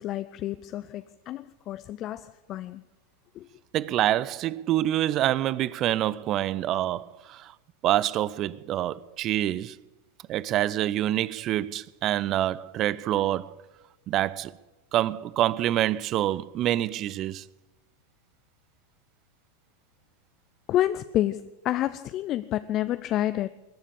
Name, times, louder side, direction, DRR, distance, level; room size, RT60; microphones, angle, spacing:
voice 1, 0.0-2.8 3.4-3.5 20.7-23.5, left 13 dB, 35° left, 0.4 m, -29 dB
voice 2, 3.7-7.5 7.8-9.8 10.3-13.6 14.1-14.5 14.9-17.4, right 13 dB, 35° right, 0.4 m, -26 dB
20.5 x 7.3 x 8.5 m
figure-of-eight pair, 90°, 0 cm